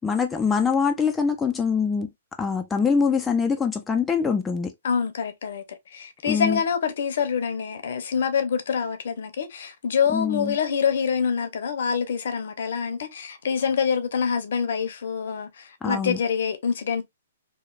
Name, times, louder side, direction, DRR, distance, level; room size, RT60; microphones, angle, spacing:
voice 1, 0.0-2.1 2.4-4.7 6.3-6.6 10.1-10.6 15.8-16.2, left 5 dB, 10° left, 0.3 m, -24 dB
voice 2, 4.8-5.6 5.9-17.0, left 6 dB, 65° left, 0.6 m, -26 dB
3.0 x 2.0 x 2.3 m
hypercardioid pair, 130°, 0 cm